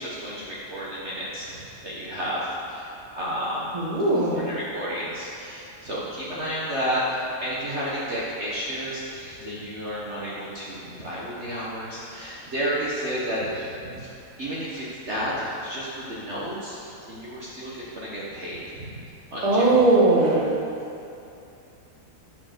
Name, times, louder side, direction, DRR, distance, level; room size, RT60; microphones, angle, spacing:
voice 1, 0.0-3.9 4.3-14.1 14.4-19.0 19.3-19.9, equal, 45° right, -8 dB, 1.5 m, -31 dB
voice 2, 3.7-4.4 19.4-20.5, right 2 dB, 25° right, -5 dB, 1.6 m, -19 dB
7.6 x 7.0 x 6.7 m, 2.7 s
omnidirectional pair, 1.8 m